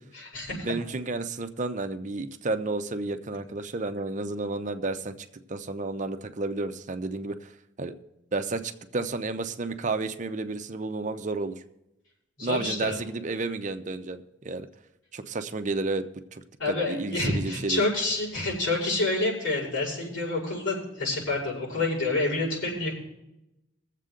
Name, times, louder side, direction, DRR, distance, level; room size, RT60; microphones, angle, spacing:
voice 1, 0.1-0.7 12.4-13.0 16.6-22.9, left 2 dB, 85° left, -5 dB, 5.6 m, -28 dB
voice 2, 0.6-5.1 5.5-7.5 7.8-7.9 8.3-11.6 12.4-14.7 15.1-16.0 16.3-17.8, right 3 dB, 40° right, 9 dB, 0.7 m, -31 dB
22.0 x 7.5 x 3.8 m, 0.89 s
head